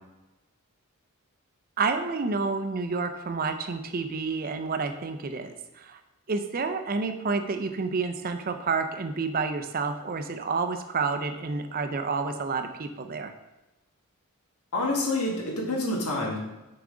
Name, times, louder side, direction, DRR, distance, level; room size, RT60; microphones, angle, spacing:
voice 1, 1.8-6.0 6.3-13.3, right 4 dB, 40° right, 7 dB, 0.5 m, -29 dB
voice 2, 14.7-16.4, left 2 dB, 85° left, -2 dB, 1.8 m, -27 dB
7.0 x 4.9 x 3.8 m, 1.0 s
head